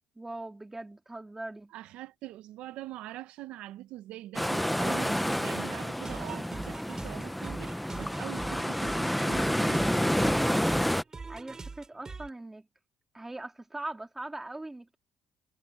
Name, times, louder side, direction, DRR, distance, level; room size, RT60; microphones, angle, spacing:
voice 1, 0.2-1.7 11.3-12.7 13.1-15.0, right 2 dB, 15° right, 3.9 m, -41 dB
voice 2, 1.7-10.4, right 15 dB, 80° right, 1.0 m, -44 dB
sound 1, 4.3-11.0, equal, ahead, 1.0 m, -29 dB
sound 2, 6.0-12.3, right 4 dB, 30° right, 4.2 m, -43 dB
supercardioid pair, 65°, 2 cm